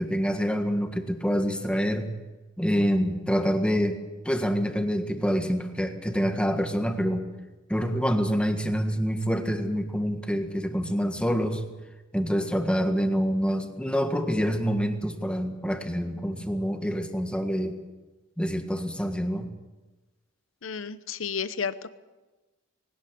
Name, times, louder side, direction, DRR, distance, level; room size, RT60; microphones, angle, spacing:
voice 1, 0.0-2.1 2.6-4.0 4.2-7.2 7.7-11.6 12.1-17.8 18.4-19.5, equal, 5° left, 6 dB, 1.7 m, -26 dB
voice 2, 20.6-21.9, left 6 dB, 85° left, 14 dB, 1.0 m, -32 dB
20.0 x 18.0 x 7.7 m, 1.2 s
head